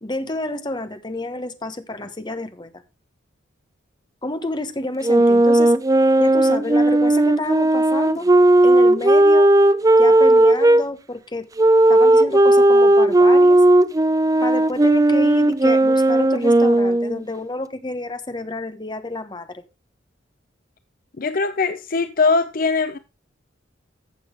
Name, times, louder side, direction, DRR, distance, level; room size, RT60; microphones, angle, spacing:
voice 1, 0.0-2.7 4.2-5.7 6.2-8.3 8.6-9.5 9.9-11.5 11.9-13.6 14.4-19.6, left 2 dB, 25° left, 1.1 m, -29 dB
sound 1, 5.0-10.8 11.6-17.2, right 1 dB, 20° right, 0.5 m, -15 dB
voice 2, 21.2-23.0, left 4 dB, 45° left, 0.6 m, -21 dB
15.0 x 7.0 x 3.4 m
head